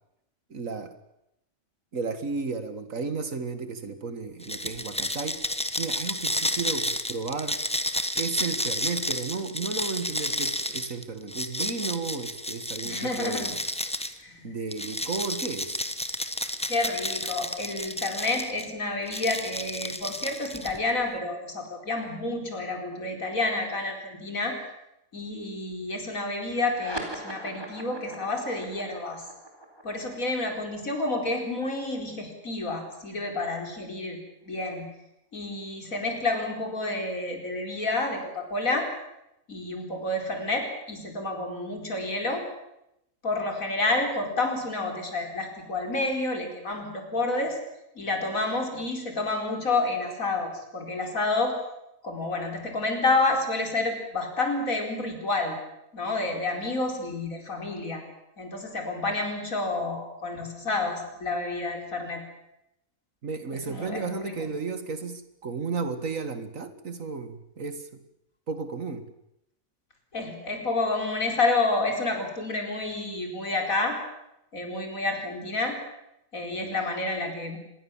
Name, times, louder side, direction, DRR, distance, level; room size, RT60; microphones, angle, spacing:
voice 1, 0.5-0.9 1.9-5.4 5.8-7.6 8.2-13.6 14.4-15.8 63.2-67.9 68.5-69.0, right 4 dB, 70° right, 10 dB, 2.3 m, -33 dB
sound 1, 4.4-14.2 14.7-18.7 19.1-20.9, left 1 dB, 5° left, 1.3 m, -31 dB
voice 2, 12.8-13.5 14.2-14.5 16.7-24.6 25.1-29.2 29.8-34.2 34.5-34.8 35.3-38.9 39.5-42.4 43.2-47.6 47.9-51.6 52.0-55.6 55.9-58.0 58.4-62.2 63.7-64.5 70.1-74.0 74.5-75.8 76.3-77.6, left 2 dB, 75° left, 3 dB, 5.1 m, -29 dB
sound 2, 26.6-33.5, right 1 dB, 15° right, 4.3 m, -42 dB
26.0 x 21.0 x 7.4 m, 0.84 s
omnidirectional pair, 1.4 m